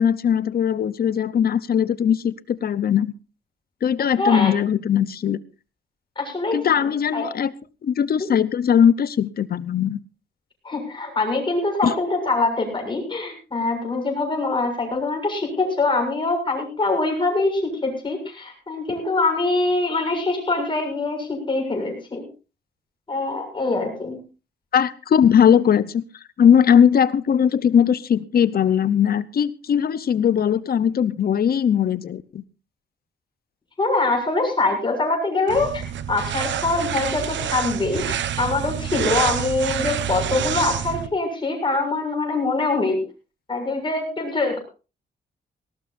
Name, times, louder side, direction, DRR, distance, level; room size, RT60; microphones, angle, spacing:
voice 1, 0.0-3.1 3.8-5.4 6.5-7.5 7.8-10.0 11.8-11.9 24.7-26.0 26.4-32.4, left 8 dB, 55° left, 17 dB, 0.8 m, -19 dB
voice 2, 4.2-4.5 6.2-6.8 7.1-7.2 10.6-22.2 23.1-24.2 33.8-35.8 36.1-43.0 43.5-44.6, left 3 dB, 25° left, 2 dB, 7.1 m, -24 dB
sound 1, 35.5-41.1, right 9 dB, 85° right, 1.1 m, -27 dB
19.0 x 18.5 x 2.6 m, 0.33 s
wide cardioid pair, 125°, 19 cm